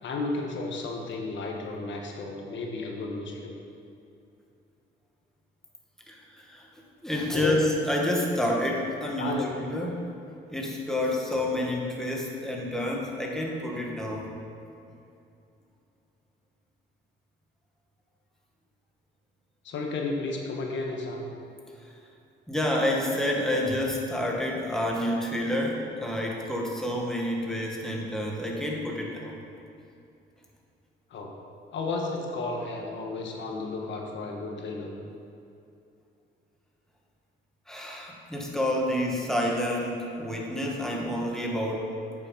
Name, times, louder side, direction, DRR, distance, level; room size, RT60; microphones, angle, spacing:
voice 1, 0.0-3.5 7.3-7.6 9.2-9.5 19.6-21.3 31.1-31.3 31.7-34.9, left 3 dB, 70° left, 0 dB, 1.5 m, -33 dB
voice 2, 6.1-6.7 7.0-10.1 10.5-14.3 22.5-29.4 37.7-41.9, left 1 dB, ahead, -2 dB, 1.8 m, -29 dB
8.9 x 7.4 x 5.6 m, 2.6 s
cardioid pair, 90°, 20 cm